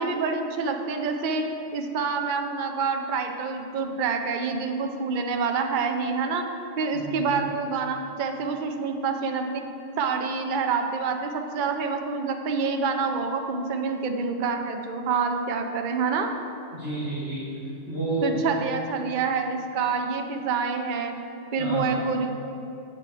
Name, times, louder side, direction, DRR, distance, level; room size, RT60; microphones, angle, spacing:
voice 1, 0.0-1.4 1.7-6.5 6.8-9.6 10.0-16.3 18.2-21.1 21.5-22.3, right 5 dB, 50° right, 4 dB, 0.6 m, -27 dB
voice 2, 6.9-7.3 16.7-17.5 17.9-18.4 21.6-22.0, right 1 dB, 50° left, -12 dB, 1.9 m, -30 dB
7.5 x 6.8 x 4.7 m, 2.7 s
omnidirectional pair, 1.3 m